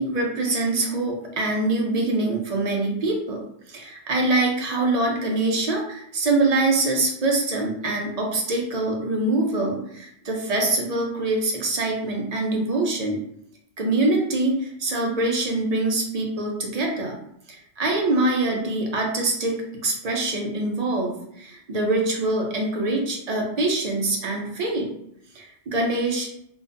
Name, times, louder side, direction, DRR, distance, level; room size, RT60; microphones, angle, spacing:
voice 1, 0.0-13.2 13.8-17.2 17.5-24.9 25.3-26.3, right 2 dB, 50° right, 0 dB, 0.5 m, -24 dB
2.5 x 2.2 x 2.5 m, 0.72 s
omnidirectional pair, 1.1 m